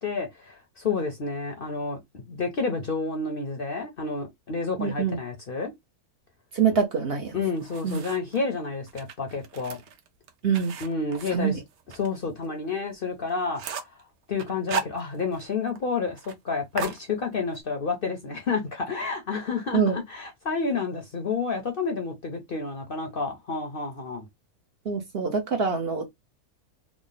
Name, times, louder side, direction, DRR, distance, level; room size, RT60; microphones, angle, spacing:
voice 1, 0.0-5.7 7.3-9.8 10.8-11.5 12.0-13.9 14.3-16.2 16.4-24.3, left 4 dB, 50° left, 0.8 m, -30 dB
voice 2, 4.8-5.2 6.5-7.4 7.8-8.0 10.4-10.7 11.3-11.6 19.7-20.0 24.8-26.1, right 6 dB, 50° right, 0.9 m, -25 dB
sound 1, 7.3-8.4 8.9-12.1 12.4-12.5 12.9-13.0 13.3-14.0 14.4-15.5 15.8-15.9 16.2-16.4 16.8-17.6, right 5 dB, 85° right, 1.2 m, -36 dB
3.6 x 2.0 x 3.8 m
omnidirectional pair, 1.5 m